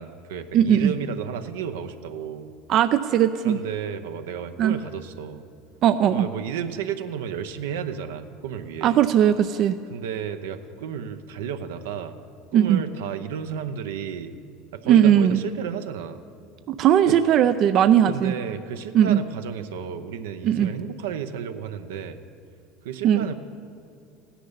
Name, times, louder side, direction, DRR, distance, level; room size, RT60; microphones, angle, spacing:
voice 1, 0.0-2.5 3.4-5.4 6.1-9.1 9.9-12.2 12.5-14.3 14.7-16.2 17.1-17.2 18.1-22.2 22.8-23.3, right 8 dB, 85° right, 8 dB, 0.8 m, -32 dB
voice 2, 0.5-0.9 2.7-3.6 4.6-4.7 5.8-6.3 8.8-9.7 12.5-12.8 14.9-15.4 16.7-18.3 18.9-19.2 20.4-20.7 23.0-23.3, right 10 dB, 50° right, 10 dB, 0.4 m, -18 dB
16.0 x 10.0 x 5.6 m, 2.5 s
supercardioid pair, 95°, 0 cm